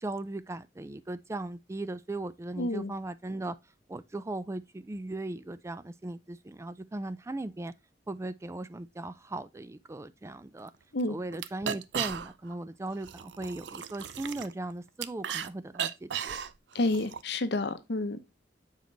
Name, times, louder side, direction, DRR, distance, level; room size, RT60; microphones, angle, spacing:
voice 1, 0.0-3.6 3.9-7.7 8.1-10.7 11.1-16.4, right 2 dB, 15° right, 0.4 m, -38 dB
voice 2, 2.6-2.9 10.9-11.2 16.7-18.3, left 2 dB, 65° left, 0.8 m, -30 dB
sound 1, 10.6-10.7 11.0-11.1 11.3-12.6 12.9-15.5 15.7-17.2, right 8 dB, 85° right, 0.5 m, -36 dB
7.3 x 4.5 x 3.9 m
head